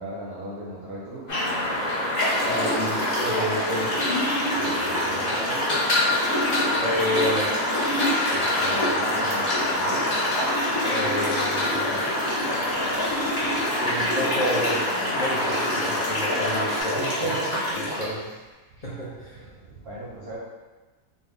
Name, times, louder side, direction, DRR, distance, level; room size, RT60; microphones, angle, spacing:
voice 1, 0.0-1.4 4.5-5.8 8.3-10.3 12.6-13.0 13.4-13.6 17.0-18.3 18.7-18.9 19.2-20.4, right 1 dB, 60° right, -7 dB, 0.7 m, -37 dB
sound 1, 1.3-16.8, left 1 dB, 45° left, 1.0 m, -27 dB
sound 2, 1.4-1.5 2.1-18.1, equal, 20° left, 0.6 m, -27 dB
voice 2, 2.4-4.1 6.8-7.7 10.9-12.2 13.8-14.8 15.1-17.3 17.8-18.2 18.8-19.4, equal, 70° left, -9 dB, 0.3 m, -29 dB
3.5 x 2.2 x 3.5 m, 1.2 s
omnidirectional pair, 1.6 m